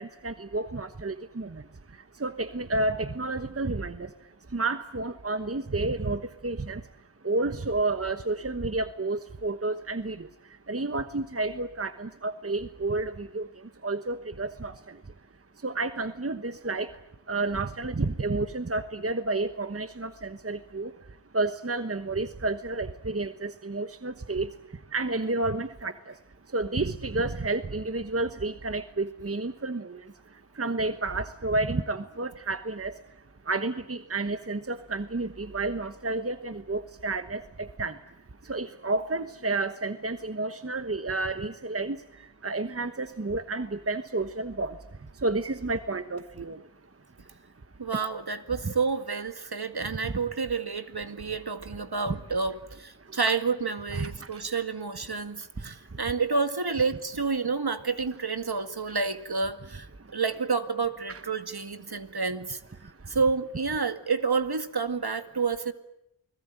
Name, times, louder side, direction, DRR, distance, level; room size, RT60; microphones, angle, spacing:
voice 1, 0.0-1.6 2.2-4.1 4.5-6.8 7.2-10.3 10.7-13.5 13.8-15.0 15.6-16.9 17.3-20.9 21.3-24.5 24.9-26.1 26.5-30.0 30.6-33.0 33.5-38.0 38.4-42.0 42.4-44.7 45.2-46.6 48.6-48.7 50.0-50.1 52.1-52.2 53.9-54.4 61.1-61.2, right 2 dB, 30° right, 10 dB, 1.2 m, -30 dB
voice 2, 47.8-59.9 60.1-62.6 63.1-65.7, right 4 dB, 55° right, 9 dB, 2.1 m, -29 dB
29.5 x 20.5 x 8.9 m, 0.82 s
wide cardioid pair, 45°, 46 cm